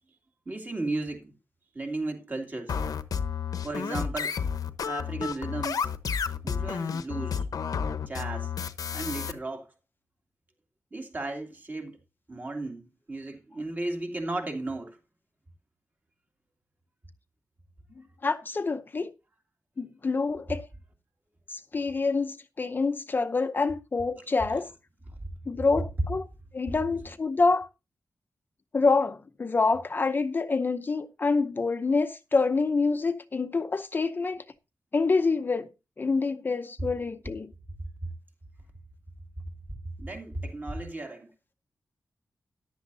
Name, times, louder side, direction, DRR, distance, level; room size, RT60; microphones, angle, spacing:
voice 1, 0.5-1.3 1.7-2.8 3.6-4.3 4.8-5.9 6.4-7.5 8.1-8.5 8.9-9.7 10.9-12.0 12.3-15.0 40.0-41.3, right 2 dB, 30° right, 2.6 m, -35 dB
sound 1, 2.7-9.3, left 7 dB, 90° left, 1.0 m, -31 dB
voice 2, 18.2-19.1 19.8-20.7 21.5-24.7 25.5-26.3 26.5-27.7 28.7-34.4 34.9-35.7 36.0-37.5, left 4 dB, 35° left, 0.7 m, -26 dB
14.0 x 11.0 x 2.7 m
wide cardioid pair, 170°, 6 cm